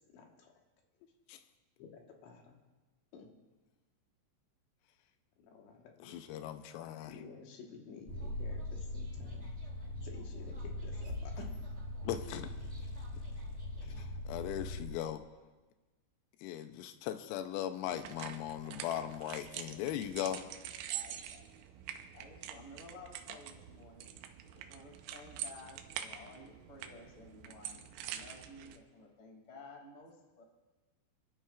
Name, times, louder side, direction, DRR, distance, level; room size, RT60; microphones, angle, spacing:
voice 1, 0.1-0.5 1.8-2.6 3.1-3.3 5.4-6.2 7.1-9.5 10.0-11.7, left 5 dB, 70° left, 0 dB, 3.4 m, -52 dB
voice 2, 6.0-7.2 12.0-12.5 14.0-15.2 16.4-20.5, left 11 dB, 90° left, 9 dB, 3.3 m, -39 dB
sound 1, 8.1-15.0, left 1 dB, 15° right, 1.7 m, -41 dB
sound 2, 17.9-28.8, right 10 dB, 85° right, 3.4 m, -46 dB
voice 3, 20.9-21.4 22.1-24.1 24.5-30.4, left 2 dB, 25° left, -1 dB, 1.6 m, -54 dB
27.5 x 12.0 x 2.5 m, 1.2 s
omnidirectional pair, 5.9 m